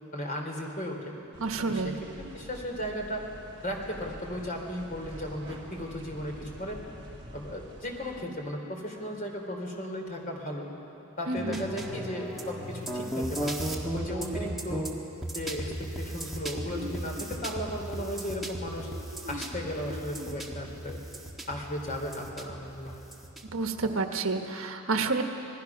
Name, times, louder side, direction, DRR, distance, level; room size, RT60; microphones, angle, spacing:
voice 1, 0.1-1.1 1.7-3.3 3.6-6.8 7.3-10.7 11.2-13.6 13.9-14.9 15.3-18.9 19.3-21.0 21.5-23.0, equal, 40° left, 1 dB, 3.2 m, -36 dB
sound 1, 1.3-8.2, right 1 dB, 25° right, 2.6 m, -47 dB
voice 2, 1.4-1.9 11.3-11.6 23.5-25.2, right 3 dB, 70° right, 5 dB, 1.3 m, -29 dB
sound 2, 11.4-23.9, right 1 dB, ahead, 1.6 m, -36 dB
sound 3, 14.3-15.0 15.7-17.3 18.0-20.4 20.7-21.2, left 1 dB, 45° right, 2.4 m, -43 dB
27.0 x 19.5 x 6.0 m, 2.8 s
head